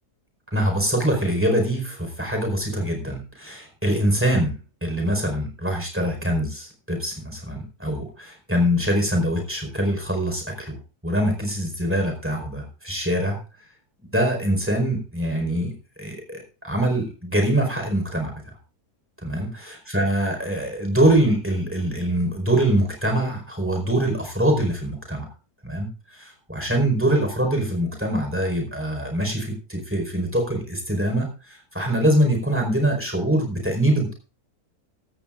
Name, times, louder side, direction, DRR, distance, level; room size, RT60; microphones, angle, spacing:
voice 1, 0.5-10.8 11.0-13.4 14.1-15.7 16.0-18.3 19.2-25.3 25.6-34.1, right 1 dB, 5° right, 3 dB, 4.7 m, -24 dB
17.0 x 15.5 x 2.5 m, 0.33 s
omnidirectional pair, 1.7 m